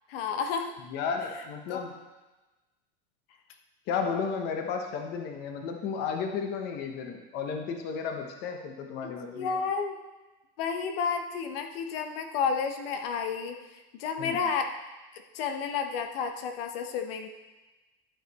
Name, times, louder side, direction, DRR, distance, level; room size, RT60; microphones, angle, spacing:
voice 1, 0.1-0.7 1.7-1.8 9.0-10.0 10.6-14.7 15.1-17.3, left 6 dB, 65° left, 6 dB, 1.0 m, -31 dB
voice 2, 0.9-1.9 3.9-9.6 14.2-14.4, left 6 dB, 30° left, 4 dB, 0.8 m, -33 dB
12.5 x 6.6 x 4.1 m, 1.1 s
supercardioid pair, 170°, 32 cm